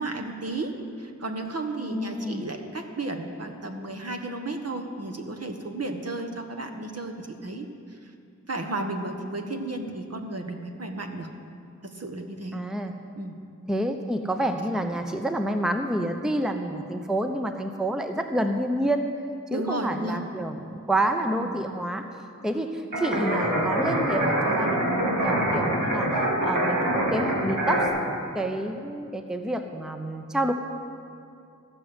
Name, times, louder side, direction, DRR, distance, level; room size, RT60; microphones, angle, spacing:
voice 1, 0.0-8.1 8.5-11.3 11.8-12.6 13.2-13.4 19.5-20.2 21.4-21.6, right 2 dB, 50° right, 4 dB, 1.3 m, -33 dB
voice 2, 1.9-2.4 12.5-12.9 13.7-19.1 19.5-22.1 22.4-27.9 28.3-30.5, right 1 dB, ahead, 6 dB, 0.7 m, -28 dB
sound 1, 22.9-27.9, right 1 dB, 85° right, 2.4 m, -25 dB
14.5 x 6.2 x 7.9 m, 2.5 s
wide cardioid pair, 45°, 31 cm